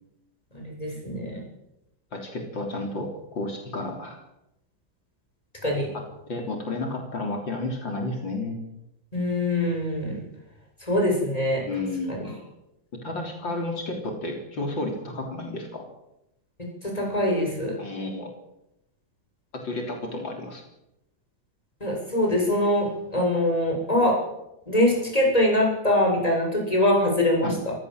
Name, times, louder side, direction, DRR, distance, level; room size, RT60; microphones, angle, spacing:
voice 1, 0.5-1.4 5.6-5.9 9.1-10.2 10.8-11.7 12.1-12.3 16.8-17.8 21.8-24.2 24.7-27.7, left 1 dB, 20° left, 0 dB, 7.7 m, -23 dB
voice 2, 2.1-4.2 5.9-8.6 11.7-12.2 13.0-15.8 17.8-18.3 19.5-20.6 27.4-27.6, left 2 dB, 75° left, 2 dB, 4.3 m, -32 dB
28.0 x 15.0 x 7.8 m, 0.87 s
omnidirectional pair, 2.0 m